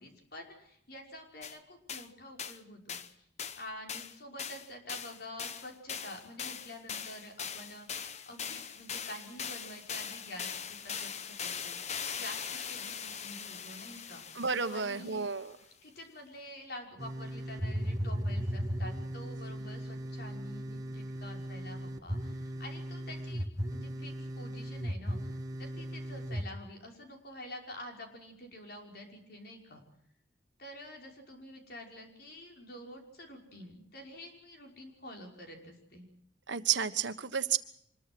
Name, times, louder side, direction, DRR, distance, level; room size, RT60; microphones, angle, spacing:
voice 1, 0.0-3.3 3.6-14.2 14.7-15.2 15.8-29.8 30.6-36.1, left 1 dB, 55° left, 2 dB, 5.7 m, -48 dB
sound 1, 1.4-1.6 1.9-2.1 2.4-2.6 2.9-3.1 3.4-3.6 3.9-15.4, left 7 dB, 35° left, 1.1 m, -41 dB
voice 2, 14.4-15.5 36.5-37.6, right 7 dB, 70° right, 10 dB, 1.4 m, -31 dB
sound 2, 17.0-26.4, equal, 20° right, 2.0 m, -37 dB
25.5 x 21.5 x 6.2 m, 0.69 s
head